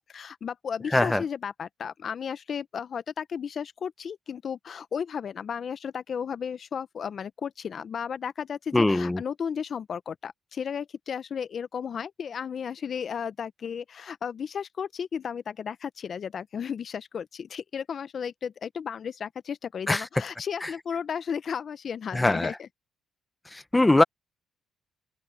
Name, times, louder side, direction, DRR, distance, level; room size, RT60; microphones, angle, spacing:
voice 1, 0.0-22.7, left 7 dB, 50° left, 0.9 m, -34 dB
voice 2, 8.7-9.2 19.9-20.0 20.6-20.7 22.1-22.5 23.5-24.0, left 2 dB, 15° left, 1.0 m, -22 dB
open air
cardioid pair, 90°, 0 cm